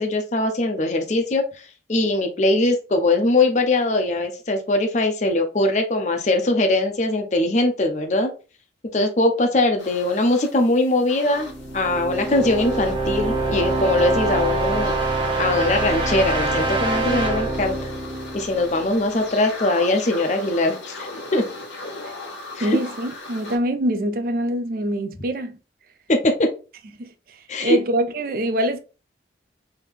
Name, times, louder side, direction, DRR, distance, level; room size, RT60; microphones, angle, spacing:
voice 1, 0.0-1.4 1.9-8.3 8.9-17.9 18.3-21.4 22.5-22.8 26.1-26.3 27.5-27.8, left 2 dB, 40° left, 0.5 m, -21 dB
sound 1, 9.8-23.6, left 2 dB, 90° left, 1.1 m, -38 dB
sound 2, 11.4-19.2, right 2 dB, 25° right, 0.9 m, -25 dB
voice 2, 22.6-25.6 27.0-28.8, equal, 50° right, 0.4 m, -24 dB
3.5 x 2.7 x 3.1 m
head